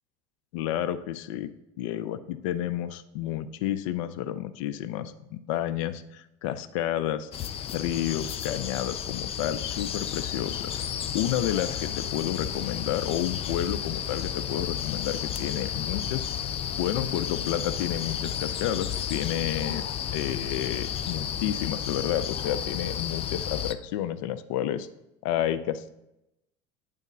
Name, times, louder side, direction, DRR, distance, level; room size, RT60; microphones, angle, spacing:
voice 1, 0.5-1.5 1.8-7.3 7.7-10.8 11.1-16.3 16.8-19.8 20.1-24.9 25.2-25.9, left 11 dB, 85° left, 11 dB, 0.6 m, -30 dB
sound 1, 7.3-23.7, left 9 dB, 40° left, 0.5 m, -32 dB
9.3 x 3.6 x 6.7 m, 0.88 s
supercardioid pair, 105°, 16 cm